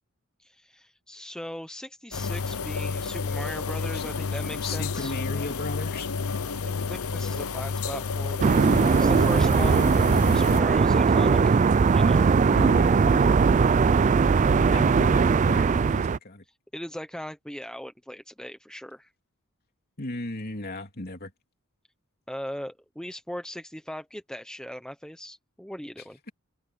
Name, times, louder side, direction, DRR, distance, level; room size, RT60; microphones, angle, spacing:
voice 1, 0.4-5.2 6.6-10.0 10.3-11.6 11.9-12.2 16.7-19.1 22.3-26.2, equal, 5° left, 0.9 m, -39 dB
sound 1, 2.1-10.6, left 4 dB, 75° left, 0.8 m, -30 dB
voice 2, 4.6-6.1 12.5-13.7 14.1-16.4 20.0-21.3, left 2 dB, 45° left, 3.1 m, -36 dB
sound 2, 8.4-16.2, right 5 dB, 35° right, 0.3 m, -20 dB
open air
head